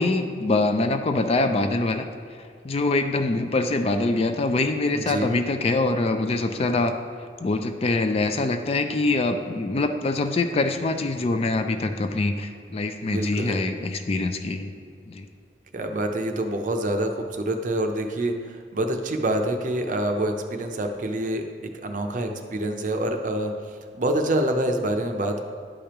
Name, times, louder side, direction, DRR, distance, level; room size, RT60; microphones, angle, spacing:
voice 1, 0.0-2.1 2.6-6.9 7.4-14.7 15.1-15.2, left 2 dB, 35° left, 7 dB, 0.4 m, -24 dB
voice 2, 4.9-5.3 13.0-13.6 15.7-21.4 21.8-25.4, right 1 dB, 45° right, 5 dB, 0.6 m, -26 dB
11.0 x 5.0 x 3.0 m, 2.1 s
head